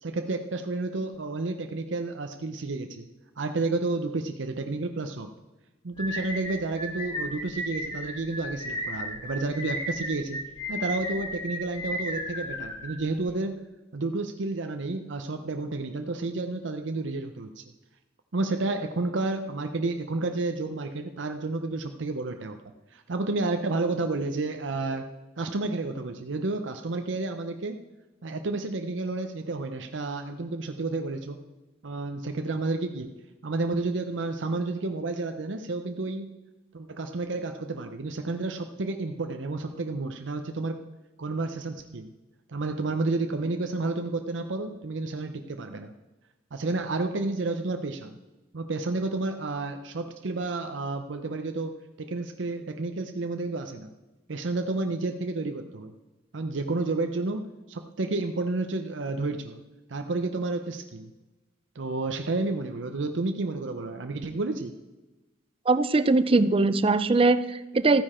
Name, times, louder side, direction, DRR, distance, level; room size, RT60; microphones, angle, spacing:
voice 1, 0.0-3.1 3.4-5.3 5.8-10.4 10.7-13.6 13.9-17.6 18.3-22.6 22.9-25.1 25.4-27.8 28.2-31.4 31.8-33.2 33.4-36.3 36.7-40.8 41.2-42.1 42.5-45.9 46.5-48.2 48.5-53.9 54.3-55.9 56.3-59.6 59.9-61.1 61.7-64.7, right 3 dB, 80° right, 6 dB, 0.7 m, -31 dB
sound 1, 6.0-13.3, equal, 25° left, 1.9 m, -34 dB
voice 2, 65.7-68.0, right 3 dB, 30° right, 13 dB, 0.5 m, -21 dB
14.0 x 9.7 x 4.3 m, 1.1 s
head